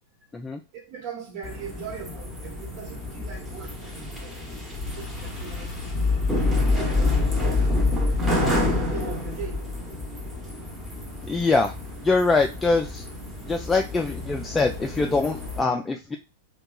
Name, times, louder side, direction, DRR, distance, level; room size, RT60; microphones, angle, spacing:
voice 1, 0.7-6.0 6.5-7.8 8.4-9.7, right 5 dB, 45° right, 1.1 m, -40 dB
sound 1, 1.4-15.6, left 2 dB, 5° right, 0.9 m, -28 dB
sound 2, 4.7-11.0, left 4 dB, 40° left, 0.9 m, -39 dB
voice 2, 11.3-11.7 12.0-13.0 13.5-16.2, left 3 dB, 15° left, 0.3 m, -23 dB
2.7 x 2.2 x 2.3 m
hypercardioid pair, 100°, 0 cm